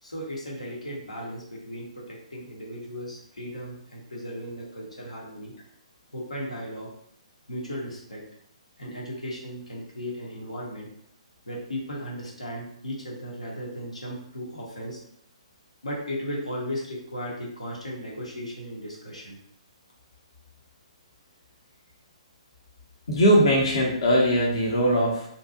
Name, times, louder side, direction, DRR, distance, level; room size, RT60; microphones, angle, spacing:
voice 1, 0.0-5.5 6.1-6.9 7.5-8.3 8.8-10.9 11.5-15.0 15.8-19.4, equal, 85° left, -3 dB, 0.9 m, -36 dB
voice 2, 23.1-25.3, equal, 60° left, -4 dB, 0.7 m, -20 dB
2.6 x 2.2 x 2.5 m, 0.69 s
figure-of-eight pair, 130°, 3 cm